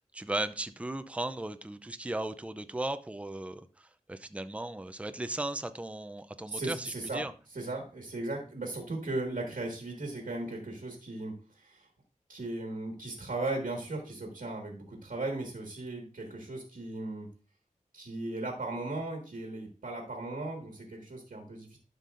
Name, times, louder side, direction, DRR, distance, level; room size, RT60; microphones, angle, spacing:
voice 1, 0.0-7.3, right 2 dB, 10° right, 10 dB, 0.5 m, -36 dB
voice 2, 6.5-7.2 7.5-11.9 12.3-17.3 17.9-21.8, right 2 dB, 85° right, 1 dB, 1.7 m, -37 dB
11.5 x 5.4 x 2.5 m, 0.37 s
wide cardioid pair, 60°, 14 cm